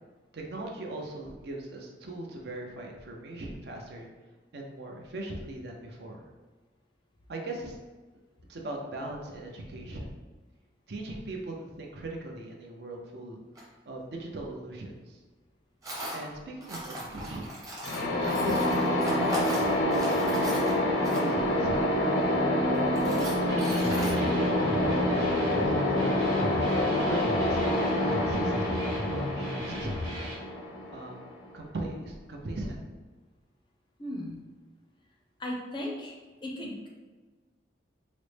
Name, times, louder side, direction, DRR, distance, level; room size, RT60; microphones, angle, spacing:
voice 1, 0.3-4.1 4.5-6.3 7.3-7.8 8.5-10.1 10.9-13.4 13.9-15.2 16.1-17.5 18.2-21.9 23.0-26.1 26.8-30.1 30.9-31.2 31.5-32.8, right 2 dB, 65° right, 0 dB, 0.5 m, -39 dB
Tools, 13.6-13.7 15.8-16.2 16.6-21.5 22.2-22.3 22.7-24.1, equal, 20° right, 0.7 m, -38 dB
sound 1, 17.8-31.5, left 1 dB, 90° left, 0.6 m, -27 dB
sound 2, 23.5-30.4, left 1 dB, 90° right, 1.2 m, -36 dB
voice 2, 34.0-34.4 35.4-36.1 36.4-36.9, left 1 dB, 25° left, -1 dB, 0.4 m, -36 dB
4.0 x 2.0 x 3.2 m, 1.3 s
head